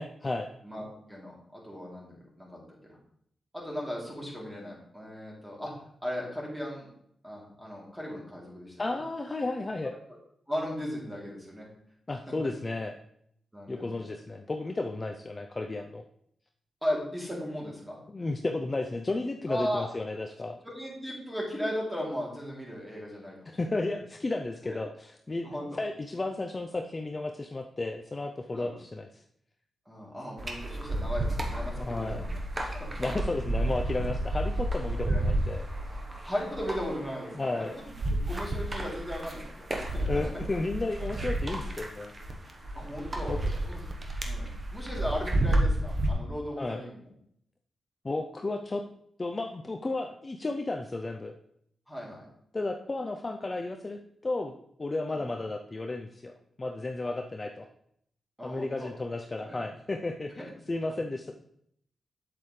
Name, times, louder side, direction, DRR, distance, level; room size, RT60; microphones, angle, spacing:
voice 1, 0.0-0.5 8.8-9.9 12.1-12.9 13.7-16.0 18.1-20.6 23.5-25.5 25.7-29.2 31.7-32.2 33.0-35.7 37.3-37.7 40.1-42.1 43.3-43.4 46.6-46.8 48.0-48.8 49.2-51.4 52.5-56.3 56.6-57.7 58.4-61.3, left 2 dB, 30° left, 4 dB, 0.6 m, -33 dB
voice 2, 0.6-2.6 2.9-3.0 3.5-5.7 6.0-6.9 7.2-8.8 10.5-11.7 13.5-14.0 16.8-18.0 19.5-19.9 20.6-23.5 24.7-24.8 25.4-25.8 28.5-28.7 29.8-32.4 32.7-32.9 34.9-35.3 36.2-37.9 38.3-40.4 41.1-41.3 42.7-43.8 44.2-47.1 51.9-52.2 55.1-55.3 58.4-58.9 59.4-59.5 60.8-60.9, equal, 5° right, -4 dB, 3.2 m, -37 dB
sound 1, 30.4-46.1, right 1 dB, 35° right, 1.2 m, -31 dB
7.7 x 7.7 x 3.3 m, 0.69 s
cardioid pair, 80°, 0 cm